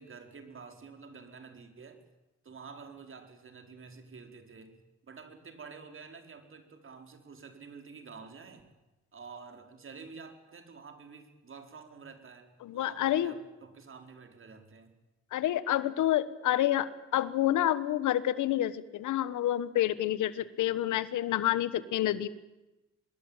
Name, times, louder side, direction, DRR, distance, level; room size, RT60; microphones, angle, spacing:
voice 1, 0.0-2.0 2.4-4.8 5.1-8.7 9.1-15.0, right 5 dB, 45° right, 7 dB, 4.7 m, -49 dB
voice 2, 12.6-13.4 15.3-22.3, left 13 dB, 80° left, 16 dB, 1.4 m, -28 dB
26.0 x 21.5 x 9.0 m, 1.0 s
cardioid pair, 90°, 30 cm